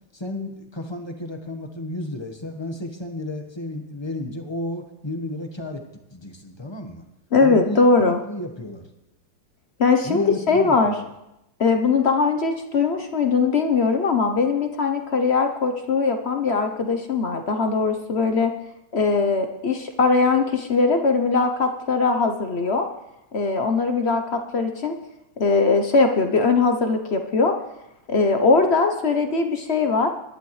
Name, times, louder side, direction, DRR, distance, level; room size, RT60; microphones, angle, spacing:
voice 1, 0.1-5.8 6.1-7.0 7.4-8.9 10.0-11.1, left 1 dB, 15° left, 5 dB, 1.0 m, -33 dB
voice 2, 7.3-8.2 9.8-10.9 11.6-18.5 18.9-22.9 23.3-24.9 25.4-27.5 28.1-30.1, left 4 dB, 50° left, 6 dB, 0.8 m, -20 dB
23.5 x 11.5 x 3.2 m, 0.88 s
omnidirectional pair, 2.0 m